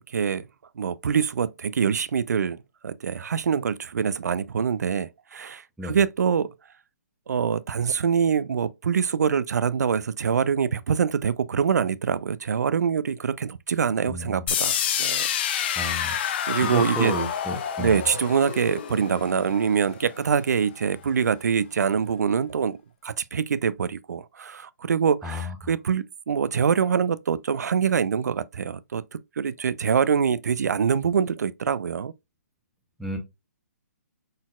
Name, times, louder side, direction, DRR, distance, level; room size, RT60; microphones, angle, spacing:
voice 1, 0.1-0.4 0.8-2.6 2.8-6.5 7.3-15.8 16.5-17.2 17.8-22.8 23.0-32.1, right 7 dB, 80° right, 0.4 m, -25 dB
voice 2, 14.1-14.4 15.8-16.1 16.6-17.9 25.2-25.5 33.0-33.2, equal, ahead, 0.8 m, -31 dB
sound 1, 14.5-20.4, left 9 dB, 35° left, 0.5 m, -28 dB
4.2 x 4.0 x 2.3 m
hypercardioid pair, 155°, 9 cm